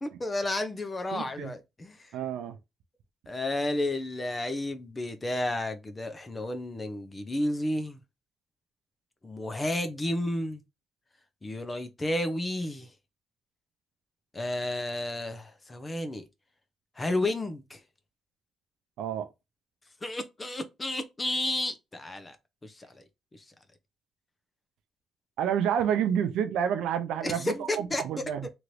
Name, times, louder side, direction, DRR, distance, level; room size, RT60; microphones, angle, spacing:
voice 1, 0.0-2.2 3.3-8.0 9.2-10.6 11.4-12.9 14.3-16.2 17.0-17.8 20.0-22.4 22.6-23.0 23.3-23.5 27.2-28.2, left 1 dB, 25° left, 0.6 m, -32 dB
voice 2, 1.1-1.5 2.1-2.6 19.0-19.3 25.4-28.5, right 8 dB, 85° right, 0.4 m, -29 dB
2.9 x 2.5 x 3.1 m
cardioid pair, 90°, 0 cm